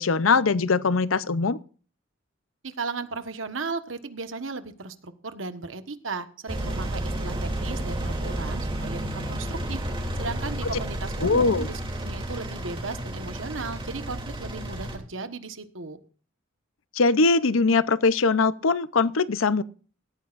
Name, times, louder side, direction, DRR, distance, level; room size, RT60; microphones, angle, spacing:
voice 1, 0.0-1.6 11.2-11.7 16.9-19.6, left 4 dB, 85° left, 0.7 m, -21 dB
voice 2, 2.6-9.0 9.3-9.8 10.1-16.0, right 4 dB, 75° right, 1.4 m, -36 dB
Engine, 6.5-15.0, right 1 dB, 25° right, 2.9 m, -31 dB
17.0 x 14.0 x 2.6 m
head